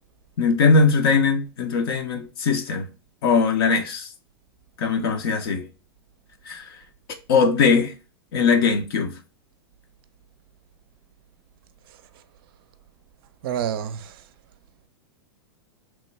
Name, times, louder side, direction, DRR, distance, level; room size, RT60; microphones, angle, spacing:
voice 1, 0.4-2.9 3.2-4.1 4.8-5.7 6.4-6.7 7.3-7.9 8.3-9.2, left 4 dB, 65° left, 0.6 m, -20 dB
voice 2, 11.9-12.2 13.4-14.3, right 9 dB, 60° right, 0.4 m, -30 dB
3.0 x 2.2 x 3.0 m
hypercardioid pair, 105°, 13 cm